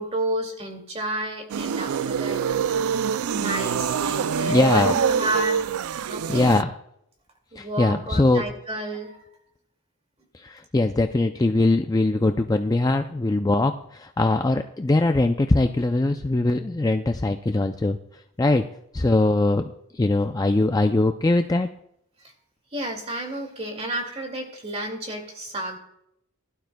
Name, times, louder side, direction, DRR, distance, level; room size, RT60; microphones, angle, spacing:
voice 1, 0.0-2.8 3.0-5.6 6.1-6.5 7.5-9.2 22.7-25.8, right 1 dB, 30° right, 3 dB, 2.2 m, -31 dB
sound 1, 1.5-6.6, right 6 dB, 75° right, 0.4 m, -25 dB
voice 2, 4.5-4.9 6.3-6.7 7.6-8.4 10.3-18.0 18.4-18.6 18.9-21.7, left 2 dB, 15° left, 6 dB, 0.4 m, -21 dB
20.5 x 12.0 x 2.2 m, 0.75 s
head